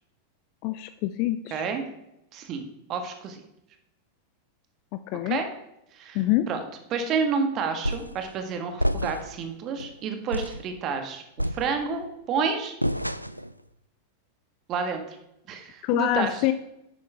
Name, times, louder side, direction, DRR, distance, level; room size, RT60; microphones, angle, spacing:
voice 1, 0.6-1.6 4.9-5.4 6.1-6.5 15.8-16.5, left 14 dB, 45° left, 11 dB, 0.4 m, -26 dB
voice 2, 1.5-1.8 2.3-3.4 5.2-5.5 5.9-6.2 6.5-6.6 6.9-12.7 14.7-15.2 15.5-16.4, right 5 dB, 35° right, 6 dB, 1.6 m, -30 dB
sound 1, 7.8-8.2 8.8-9.4 9.8-9.9 10.3-10.7 11.4-12.1 12.8-13.5, equal, 90° right, 0.3 m, -29 dB
11.0 x 8.5 x 3.5 m, 0.84 s
figure-of-eight pair, 90°, 0 cm